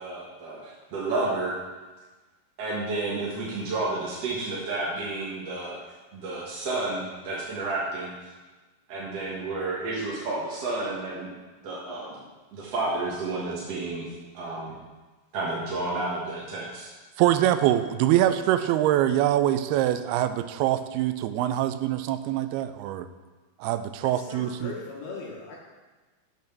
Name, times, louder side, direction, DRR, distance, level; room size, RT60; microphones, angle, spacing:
voice 1, 0.0-1.6 2.6-5.8 6.1-8.3 8.9-11.3 11.6-12.2 12.5-14.0 14.3-14.8 15.3-16.9, right 2 dB, 55° right, -6 dB, 2.1 m, -31 dB
voice 2, 17.2-23.1 23.6-24.7, right 12 dB, 90° right, 11 dB, 2.5 m, -24 dB
voice 3, 24.0-25.6, left 4 dB, 80° left, -4 dB, 3.2 m, -39 dB
8.9 x 6.1 x 5.8 m, 1.2 s
omnidirectional pair, 4.5 m